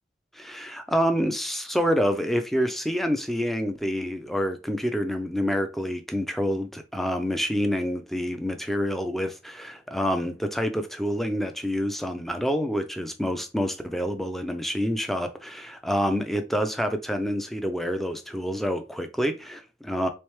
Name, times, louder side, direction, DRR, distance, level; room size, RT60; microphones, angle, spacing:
voice 1, 0.3-20.1, equal, ahead, 0.4 m, -27 dB
3.5 x 3.3 x 3.1 m
head